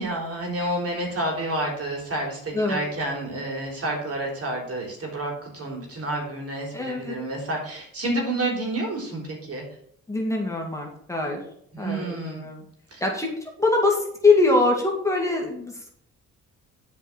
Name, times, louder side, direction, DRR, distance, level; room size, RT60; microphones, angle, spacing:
voice 1, 0.0-9.6 11.7-12.5 12.9-13.0, right 1 dB, 50° right, 0 dB, 3.6 m, -29 dB
voice 2, 6.7-7.2 10.1-11.4 11.8-12.6 13.0-13.3 13.6-16.0, left 3 dB, 10° left, -1 dB, 2.2 m, -23 dB
8.3 x 5.1 x 6.0 m, 0.67 s
cardioid pair, 90°, 30 cm